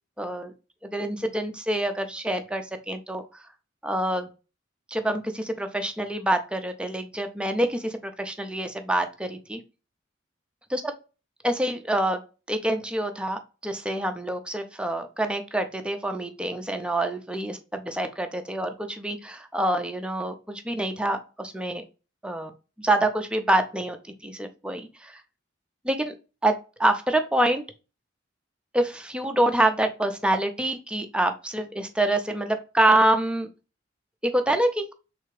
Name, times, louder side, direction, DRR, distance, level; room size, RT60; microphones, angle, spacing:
voice 1, 0.2-0.5 0.8-3.2 3.8-4.3 4.9-9.6 10.7-11.0 11.4-12.2 12.5-21.8 22.2-22.5 22.8-24.0 24.2-25.2 25.8-26.1 26.4-27.6 28.7-33.5 34.2-34.9, right 1 dB, 5° right, 6 dB, 0.5 m, -26 dB
3.5 x 3.3 x 3.2 m, 0.31 s
head